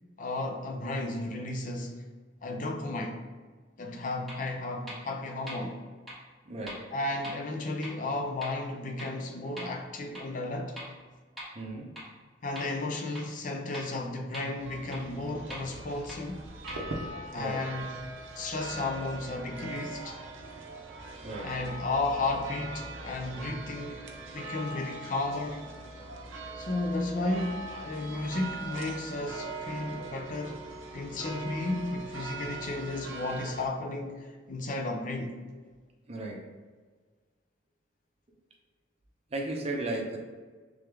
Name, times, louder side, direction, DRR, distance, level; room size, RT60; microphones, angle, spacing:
voice 1, 0.2-2.0 2.4-3.2 3.8-5.8 6.9-10.8 12.4-16.5 17.3-17.9 18.4-20.2 21.4-24.1 24.3-25.7 26.5-30.6 30.9-35.4, left 2 dB, 45° left, 0.5 m, -33 dB
sound 1, 4.3-4.4 4.9-5.0 5.5-5.6 6.1-6.2 6.7-6.8 7.2-7.3 7.8-7.9 8.4-8.5 9.0-9.1 9.6-9.7 10.1-10.2 10.8-10.9 11.4-11.5 12.0-12.1 12.5-12.6 13.1-13.2 13.7-13.8 14.3-14.4 14.9-15.0 15.5-15.6 16.1-16.2 16.7-16.8, equal, ahead, 1.3 m, -40 dB
voice 2, 6.5-6.8 11.5-11.9 17.3-17.6 21.2-21.5 36.1-36.4 39.3-40.2, right 2 dB, 35° right, 0.6 m, -35 dB
sound 2, 14.6-33.7, right 2 dB, 90° right, 0.6 m, -41 dB
3.4 x 3.4 x 3.4 m
head